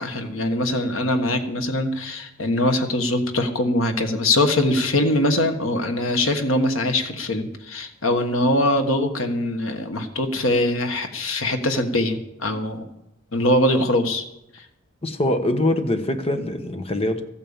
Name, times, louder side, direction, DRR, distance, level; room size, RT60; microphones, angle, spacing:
voice 1, 0.0-12.9 13.3-14.2 14.5-14.6, left 1 dB, 90° left, 6 dB, 1.5 m, -22 dB
voice 2, 15.0-17.2, left 1 dB, 30° left, 8 dB, 1.2 m, -23 dB
14.0 x 9.0 x 7.2 m, 0.85 s
head